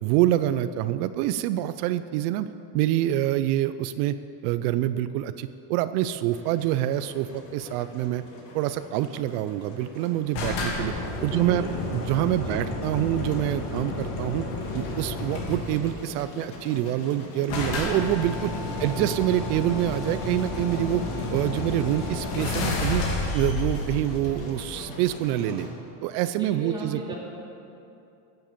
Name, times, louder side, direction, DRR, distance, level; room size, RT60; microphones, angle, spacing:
voice 1, 0.0-2.5 2.7-4.2 4.4-8.2 8.5-10.9 11.2-11.7 11.9-14.4 14.7-18.5 18.8-21.0 21.3-23.1 23.3-25.7 26.0-27.1, right 13 dB, 85° right, 12 dB, 0.7 m, -26 dB
Engine, 6.3-25.7, left 2 dB, 90° left, 3.5 m, -43 dB
sound 1, 10.3-15.9 16.9-17.0 17.1-17.2 17.5-25.0, left 2 dB, 65° left, 3.0 m, -31 dB
voice 2, 11.2-11.8 12.4-12.6 18.6-19.1 21.1-21.3 25.3-25.8 26.4-27.2, right 1 dB, 10° right, -5 dB, 2.8 m, -37 dB
16.5 x 8.0 x 7.4 m, 2.7 s
cardioid pair, 160°, 45 cm